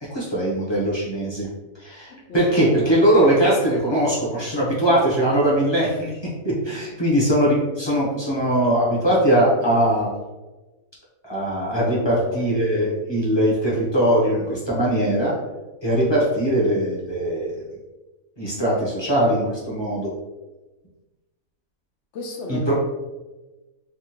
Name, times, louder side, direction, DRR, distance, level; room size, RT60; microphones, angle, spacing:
voice 1, 0.1-1.5 1.8-6.1 6.4-10.1 11.2-15.3 15.8-17.6 18.4-20.1 22.5-22.7, right 1 dB, 25° left, -7 dB, 0.7 m, -21 dB
voice 2, 2.1-2.5 11.8-12.5 22.1-22.7, left 3 dB, 65° left, 2 dB, 0.7 m, -35 dB
3.6 x 2.3 x 2.8 m, 1.1 s
omnidirectional pair, 1.5 m